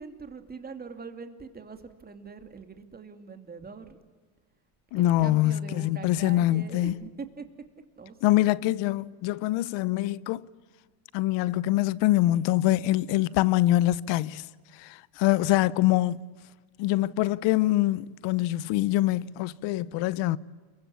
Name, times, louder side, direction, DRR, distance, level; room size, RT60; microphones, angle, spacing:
voice 1, 0.0-4.0 4.9-7.4 8.0-8.4, right 5 dB, 20° right, 2.6 m, -43 dB
voice 2, 4.9-6.9 8.2-10.5 11.1-14.5 14.8-16.2 16.8-20.4, left 15 dB, 60° left, 1.0 m, -24 dB
29.0 x 23.0 x 8.7 m
cardioid pair, 130°, 48 cm